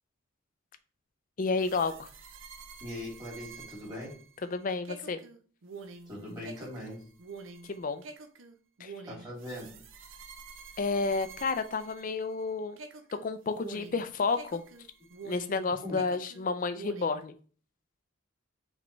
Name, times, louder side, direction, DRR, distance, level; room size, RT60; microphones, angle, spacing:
voice 1, 1.4-2.1 4.4-5.2 7.7-8.0 8.8-8.9 10.8-12.8 13.2-14.6 15.2-17.3, left 4 dB, 40° left, 10 dB, 0.4 m, -31 dB
sound 1, 1.6-12.4 12.8-15.6 15.9-17.2, right 4 dB, 65° right, 0.6 m, -48 dB
voice 2, 2.8-4.2 6.1-7.1 9.1-9.8 15.8-16.0, left 1 dB, 20° right, -5 dB, 2.4 m, -40 dB
5.0 x 3.4 x 3.1 m, 0.41 s
head